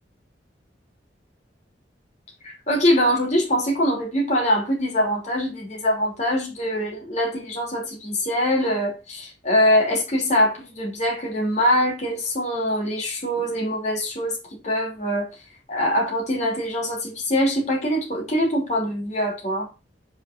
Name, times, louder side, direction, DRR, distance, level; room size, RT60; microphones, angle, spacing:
voice 1, 2.4-14.4 14.6-15.3 15.7-19.7, equal, 40° left, 2.8 m, -23 dB
5.8 x 4.6 x 4.1 m
head